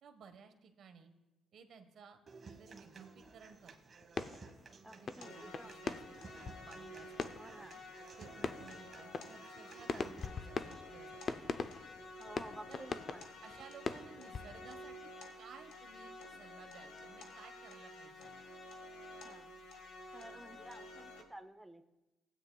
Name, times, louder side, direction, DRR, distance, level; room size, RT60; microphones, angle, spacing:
voice 1, 0.0-1.1 1.5-3.9 4.9-7.7 8.2-11.5 12.7-13.0 13.4-15.1 15.4-18.3, right 6 dB, 65° right, 6 dB, 1.2 m, -57 dB
Human voice / Acoustic guitar, 2.3-10.2, right 4 dB, 40° right, 1.3 m, -56 dB
sound 1, 3.2-3.7 4.0-4.8 5.1-15.0, left 5 dB, 45° left, 0.5 m, -43 dB
voice 2, 4.8-5.8 7.4-7.8 12.2-13.2 19.2-19.5 20.1-21.9, right 1 dB, 5° right, 6 dB, 0.6 m, -52 dB
sound 2, 5.2-21.2, left 1 dB, 85° left, 1.4 m, -51 dB
16.5 x 9.1 x 2.3 m, 1.0 s
cardioid pair, 90°, 0 cm